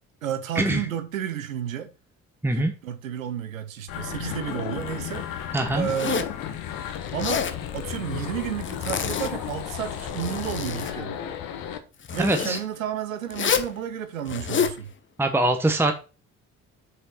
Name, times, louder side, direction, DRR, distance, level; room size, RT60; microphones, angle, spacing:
voice 1, 0.2-1.9 2.5-5.3 5.7-6.3 7.1-7.4 7.7-11.2 12.1-14.9, right 10 dB, 80° right, 0.8 m, -31 dB
sound 1, 3.9-11.8, left 10 dB, 55° left, 1.1 m, -34 dB
voice 2, 5.5-5.9 12.2-12.6 15.2-15.9, right 2 dB, 5° right, 1.1 m, -22 dB
Zipper (clothing), 5.8-6.4 7.1-7.6 8.6-9.5 9.9-11.0 12.0-12.6 13.3-13.7 14.3-14.8, left 7 dB, 30° left, 0.9 m, -28 dB
6.6 x 5.7 x 4.2 m
figure-of-eight pair, 45°, 40 cm